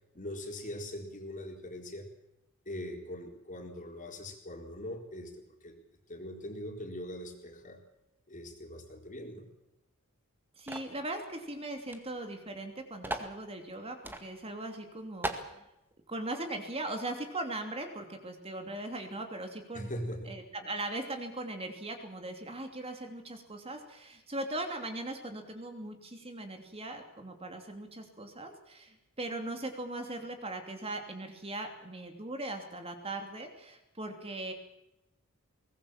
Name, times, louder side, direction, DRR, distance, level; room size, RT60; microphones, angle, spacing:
voice 1, 0.1-2.1 2.7-5.8 6.1-7.8 8.3-9.5 19.7-20.3, left 1 dB, 35° left, 3 dB, 4.2 m, -41 dB
voice 2, 10.6-15.7 16.1-19.9 20.2-34.5, right 2 dB, 25° right, 5 dB, 2.9 m, -39 dB
sound 1, 10.7-11.0 11.9-12.0 12.3-12.4 13.0-13.3 14.0-14.2 14.7-14.8 15.2-15.5, right 1 dB, 10° right, 2.0 m, -36 dB
23.0 x 19.5 x 7.4 m, 0.90 s
head